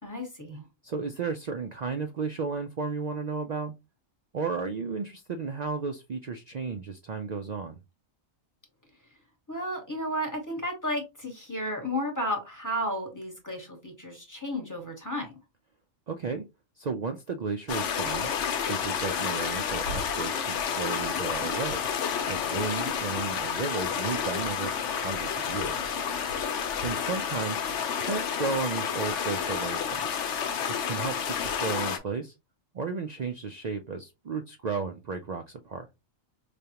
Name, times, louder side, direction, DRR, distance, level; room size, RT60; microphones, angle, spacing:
voice 1, 0.0-0.6 9.5-15.4, equal, 15° left, 1.0 m, -33 dB
voice 2, 0.8-3.7 4.3-7.8 16.1-16.4 16.8-18.3 18.7-25.9 26.8-27.7 28.0-30.2 30.8-32.3 32.7-35.9, right 5 dB, 85° right, 0.3 m, -34 dB
sound 1, 17.7-32.0, left 7 dB, 70° left, 1.0 m, -30 dB
4.9 x 2.3 x 2.8 m
omnidirectional pair, 1.3 m